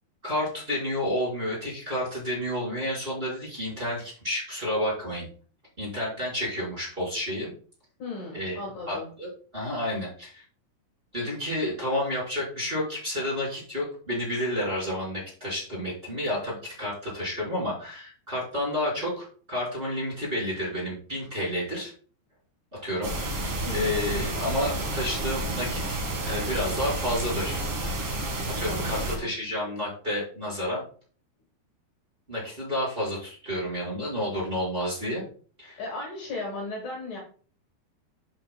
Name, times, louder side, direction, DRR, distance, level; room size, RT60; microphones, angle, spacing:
voice 1, 0.2-5.3 5.8-7.5 8.3-8.6 8.9-10.4 11.1-21.9 22.8-23.1 23.4-27.6 28.6-30.8 32.3-35.3 35.6-35.8, left 1 dB, 15° right, -6 dB, 4.4 m, -30 dB
voice 2, 8.0-9.1 23.6-24.0 28.7-29.2 35.8-37.2, left 2 dB, 60° left, -1 dB, 3.0 m, -36 dB
sound 1, 23.0-29.2, right 1 dB, 50° right, 1.9 m, -30 dB
11.5 x 7.2 x 2.2 m, 0.43 s
omnidirectional pair, 4.8 m